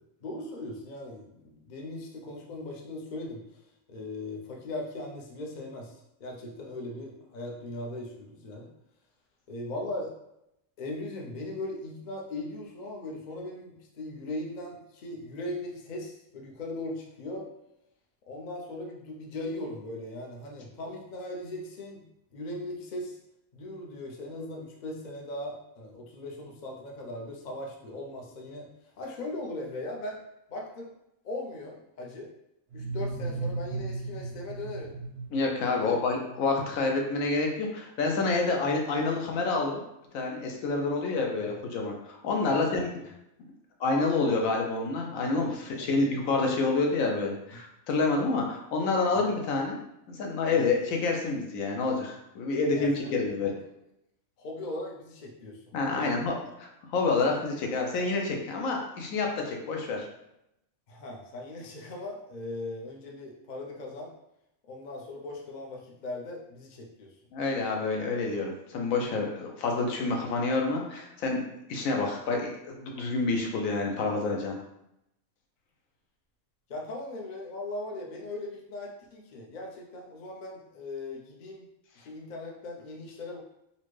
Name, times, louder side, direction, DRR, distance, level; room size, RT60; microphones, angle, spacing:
voice 1, 0.0-3.6 3.9-5.9 6.2-8.7 9.5-10.1 10.8-17.5 18.3-22.1 22.3-23.2 23.5-28.7 29.0-30.2 30.5-30.9 31.2-32.3 32.7-35.0 35.8-36.0 41.4-41.5 42.5-42.8 45.7-45.9 52.7-53.3 54.4-55.6 55.9-56.1 60.9-64.1 64.7-67.1 76.7-81.6 82.0-83.4, left 2 dB, 55° left, -1 dB, 0.5 m, -39 dB
sound 1, 32.7-36.4, right 3 dB, 60° right, 0.7 m, -36 dB
voice 2, 35.3-39.8 40.1-42.9 43.8-49.8 50.1-53.5 55.7-60.0 67.3-71.4 71.7-74.5, left 3 dB, 75° left, 1 dB, 1.0 m, -28 dB
4.1 x 2.1 x 3.1 m, 0.83 s
omnidirectional pair, 1.5 m